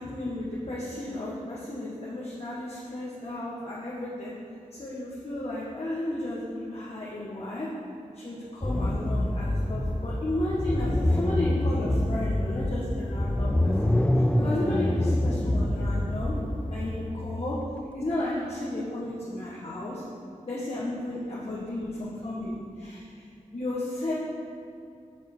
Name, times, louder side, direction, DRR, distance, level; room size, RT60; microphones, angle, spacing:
voice 1, 0.0-4.4 4.8-7.7 8.1-16.4 16.7-17.6 17.9-20.0 20.5-23.3 23.5-24.1, left 1 dB, 50° left, -8 dB, 1.2 m, -33 dB
sound 1, 8.6-18.0, left 1 dB, 10° left, 0.3 m, -26 dB
7.3 x 5.4 x 4.4 m, 2.5 s
wide cardioid pair, 80°, 13 cm